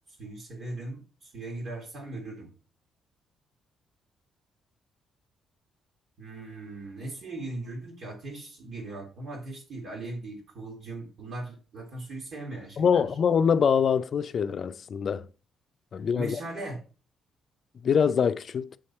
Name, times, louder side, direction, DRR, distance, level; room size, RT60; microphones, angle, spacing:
voice 1, 0.2-2.5 6.2-13.0 16.1-16.8, right 2 dB, 65° right, 2.1 m, -39 dB
voice 2, 12.8-15.3 15.9-16.4 17.8-18.8, left 7 dB, 55° left, 0.4 m, -24 dB
7.7 x 3.3 x 4.2 m
cardioid pair, 90°, 0 cm